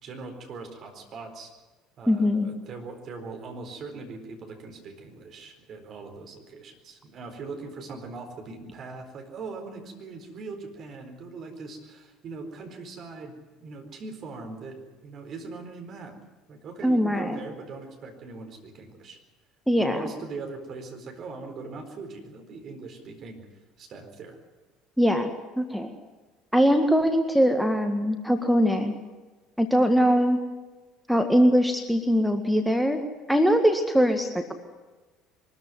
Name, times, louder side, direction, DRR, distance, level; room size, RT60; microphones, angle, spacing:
voice 1, 0.0-1.5 2.0-16.2 16.5-19.2 19.8-23.4 23.8-24.4, right 4 dB, 45° right, 4 dB, 4.3 m, -41 dB
voice 2, 2.1-2.5 16.8-17.4 19.7-20.0 25.0-25.3 25.6-25.9 26.5-28.9 29.6-30.4 31.1-33.0 33.3-34.5, equal, ahead, 6 dB, 1.8 m, -22 dB
23.0 x 14.0 x 9.7 m, 1.3 s
figure-of-eight pair, 60°, 0 cm